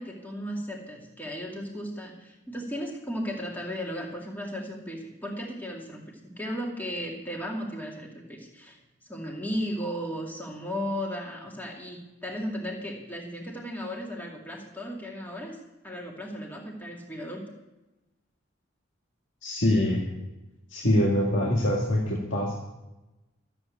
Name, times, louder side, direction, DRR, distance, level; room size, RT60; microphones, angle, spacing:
voice 1, 0.0-8.8 9.1-15.6 15.8-17.5, equal, 10° left, -1 dB, 2.3 m, -35 dB
voice 2, 19.4-20.0 20.7-22.6, left 1 dB, 70° left, -4 dB, 2.1 m, -24 dB
13.5 x 7.9 x 8.4 m, 1.0 s
head